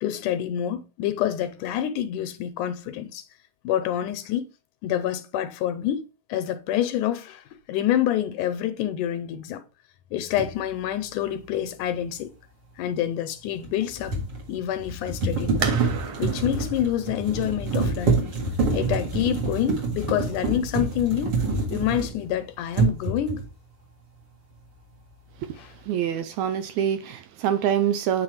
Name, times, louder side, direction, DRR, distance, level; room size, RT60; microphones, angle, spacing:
voice 1, 0.0-3.3 3.6-4.4 4.8-9.6 10.1-12.3 12.8-14.2 14.5-15.7 16.2-18.3 18.7-21.4 21.7-23.4 25.6-25.7, left 11 dB, 85° left, 2.2 m, -27 dB
sound 1, 10.4-10.5 13.6-22.4 22.7-23.5, right 4 dB, 40° right, 2.1 m, -26 dB
sound 2, 15.6-21.1, right 5 dB, 60° right, 1.6 m, -37 dB
voice 2, 25.4-28.2, right 9 dB, 80° right, 1.7 m, -26 dB
8.7 x 4.4 x 3.2 m
omnidirectional pair, 3.6 m